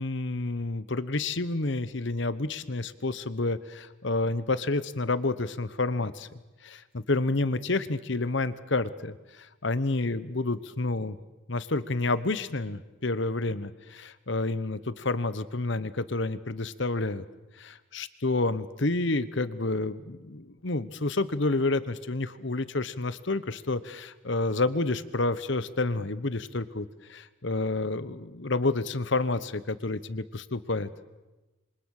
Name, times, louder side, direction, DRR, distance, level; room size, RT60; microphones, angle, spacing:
voice 1, 0.0-6.3 6.6-11.2 11.5-17.2 17.6-30.9, left 2 dB, 55° left, 14 dB, 1.1 m, -29 dB
27.0 x 24.5 x 6.6 m, 1.1 s
head